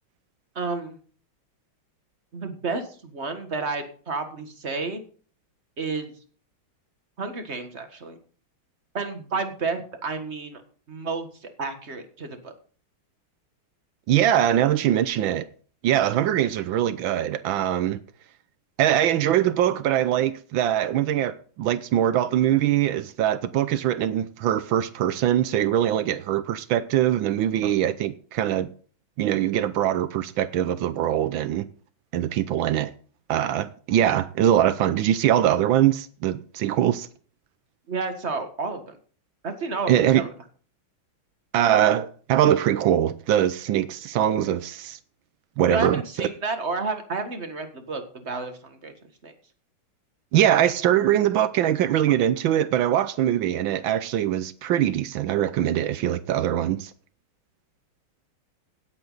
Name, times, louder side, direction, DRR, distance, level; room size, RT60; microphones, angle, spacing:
voice 1, 0.6-1.0 2.3-5.0 5.8-6.1 7.2-8.2 8.9-10.6 10.9-11.3 11.6-12.5 37.9-38.8 39.4-40.3 45.6-48.9 49.2-49.3, right 4 dB, 35° right, 1.7 m, -31 dB
voice 2, 14.1-15.5 15.8-18.0 18.8-28.7 29.2-31.7 32.1-32.9 33.3-37.1 39.9-40.2 41.5-45.0 45.6-46.3 50.3-56.9, right 11 dB, 75° right, 1.4 m, -22 dB
16.5 x 8.4 x 4.0 m
omnidirectional pair, 2.3 m